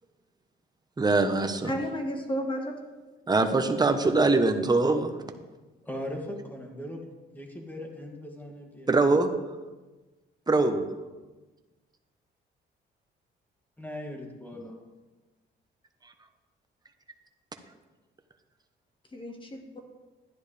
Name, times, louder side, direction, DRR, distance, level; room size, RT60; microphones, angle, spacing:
voice 1, 1.0-1.7 3.3-5.1 8.9-9.3 10.5-10.8, right 3 dB, 20° right, 7 dB, 1.0 m, -23 dB
voice 2, 1.6-2.8 19.1-19.8, equal, 25° left, 3 dB, 1.8 m, -32 dB
voice 3, 5.8-8.9 13.8-14.8, left 1 dB, 10° left, 1 dB, 2.2 m, -39 dB
12.5 x 10.5 x 3.4 m, 1.2 s
cardioid pair, 90°, 20 cm